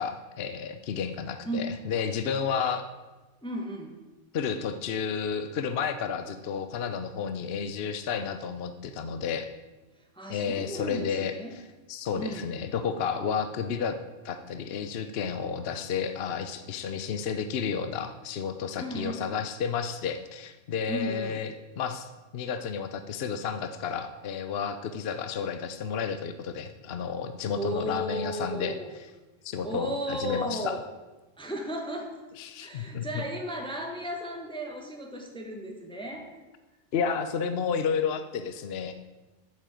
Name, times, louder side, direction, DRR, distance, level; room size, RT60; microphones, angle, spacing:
voice 1, 0.0-2.8 4.3-9.5 10.3-11.6 11.9-13.9 14.2-28.8 29.4-30.8 32.4-33.2 36.9-38.9, left 6 dB, 60° left, 9 dB, 0.9 m, -31 dB
voice 2, 1.4-1.8 3.4-3.9 10.1-11.5 12.2-12.5 18.8-19.2 20.9-21.3 27.5-28.9 29.6-30.8 31.4-32.1 32.6-36.3, right 1 dB, 5° left, 2 dB, 1.3 m, -34 dB
8.8 x 7.6 x 8.8 m, 1.2 s
omnidirectional pair, 1.3 m